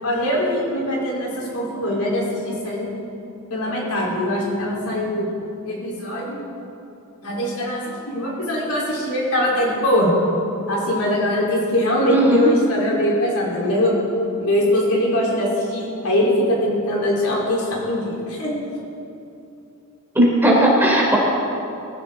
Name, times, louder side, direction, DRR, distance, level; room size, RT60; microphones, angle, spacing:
voice 1, 0.0-2.9 3.5-5.3 5.6-6.4 7.2-10.1 10.7-13.9 14.4-18.5, left 1 dB, 85° left, -4 dB, 4.4 m, -22 dB
voice 2, 12.1-12.5 20.2-21.2, right 1 dB, 10° right, -3 dB, 3.5 m, -16 dB
21.0 x 15.5 x 4.0 m, 2.7 s
head